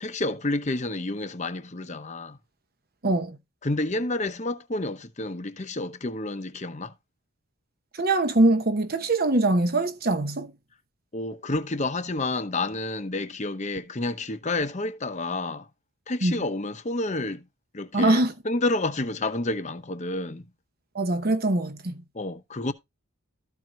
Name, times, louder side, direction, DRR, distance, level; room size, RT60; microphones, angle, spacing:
voice 1, 0.0-2.4 3.6-6.9 11.1-15.7 16.1-17.4 17.7-20.5 22.1-22.7, left 2 dB, 30° left, 0.8 m, -29 dB
voice 2, 3.0-3.4 8.0-10.5 16.2-16.3 17.9-18.3 20.9-21.9, right 2 dB, 45° right, 0.9 m, -23 dB
13.5 x 4.6 x 3.8 m
head